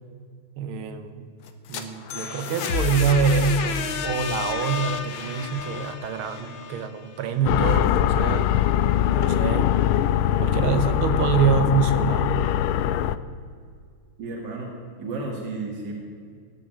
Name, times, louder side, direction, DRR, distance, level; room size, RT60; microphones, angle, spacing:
voice 1, 0.6-1.3 1.7-8.6 9.2-9.7 10.4-12.4, right 5 dB, 80° right, 10 dB, 1.9 m, -25 dB
sound 1, 1.5-7.3, left 5 dB, 70° left, 1.8 m, -30 dB
sound 2, 7.5-13.2, left 11 dB, 85° left, 1.5 m, -22 dB
voice 2, 14.2-14.7 15.0-15.9, right 3 dB, 55° right, -1 dB, 2.8 m, -32 dB
18.0 x 6.8 x 9.2 m, 2.1 s
omnidirectional pair, 2.3 m